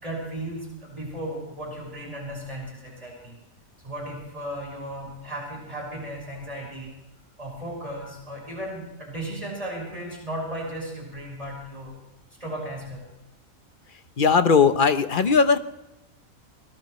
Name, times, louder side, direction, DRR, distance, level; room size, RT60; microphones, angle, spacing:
voice 1, 0.0-3.3 3.8-6.9 7.4-12.0 12.4-13.0, right 1 dB, 25° right, -1 dB, 6.0 m, -35 dB
voice 2, 14.2-15.6, left 5 dB, 40° left, 10 dB, 0.9 m, -18 dB
23.0 x 19.5 x 3.2 m, 0.92 s
omnidirectional pair, 1.5 m